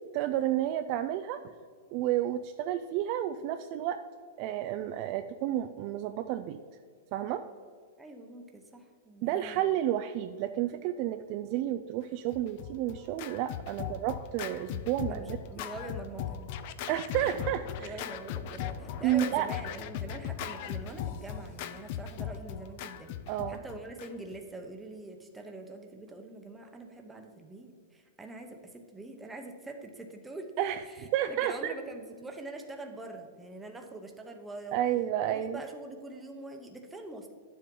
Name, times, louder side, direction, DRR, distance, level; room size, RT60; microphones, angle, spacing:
voice 1, 0.1-1.4 1.9-4.0 4.4-6.6 7.1-7.5 9.2-15.4 16.9-17.9 19.0-19.5 23.3-23.6 30.6-30.8 31.1-31.7 34.7-35.6, right 12 dB, 40° right, 9 dB, 0.3 m, -31 dB
voice 2, 8.0-9.6 13.7-14.1 15.1-16.5 17.8-23.2 23.5-34.8 35.3-37.3, right 2 dB, 5° right, 4 dB, 0.8 m, -44 dB
Scratching (performance technique), 12.3-24.4, left 9 dB, 45° left, 0.4 m, -38 dB
11.0 x 7.5 x 3.8 m, 2.1 s
supercardioid pair, 160°, 0 cm